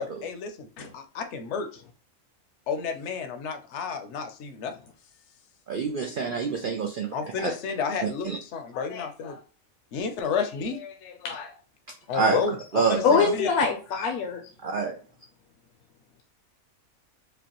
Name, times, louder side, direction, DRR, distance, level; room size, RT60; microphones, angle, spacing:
voice 1, 0.0-1.8 2.7-4.7 6.3-6.4 7.1-9.4 9.9-11.5 12.1-13.5, left 5 dB, 60° left, 8 dB, 0.8 m, -31 dB
voice 2, 5.7-7.2 7.4-7.5 8.0-8.4 12.1-12.4 12.7-13.3 14.6-15.0, right 5 dB, 80° right, 2 dB, 0.4 m, -27 dB
voice 3, 13.0-14.4, left 5 dB, 80° left, 2 dB, 1.1 m, -23 dB
5.2 x 2.2 x 2.8 m, 0.37 s
omnidirectional pair, 1.5 m